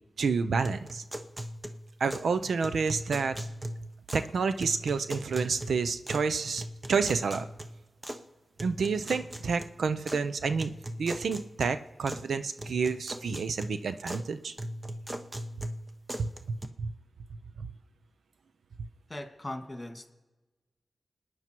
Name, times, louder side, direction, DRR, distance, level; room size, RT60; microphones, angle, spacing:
voice 1, 0.2-1.0 2.0-3.4 4.1-6.6 6.9-7.5 8.6-10.7 11.0-14.5 16.2-16.9 17.6-17.7, right 5 dB, 90° right, 11 dB, 0.6 m, -29 dB
sound 1, 0.6-2.3 2.6-4.3 4.6-6.3 6.6-8.2 8.6-10.2 10.6-12.3 12.6-14.3 14.6-16.7, right 1 dB, 20° right, 1.1 m, -40 dB
voice 2, 19.1-20.1, left 1 dB, 20° left, 5 dB, 2.1 m, -39 dB
29.0 x 9.8 x 4.6 m, 1.1 s
wide cardioid pair, 70°, 0 cm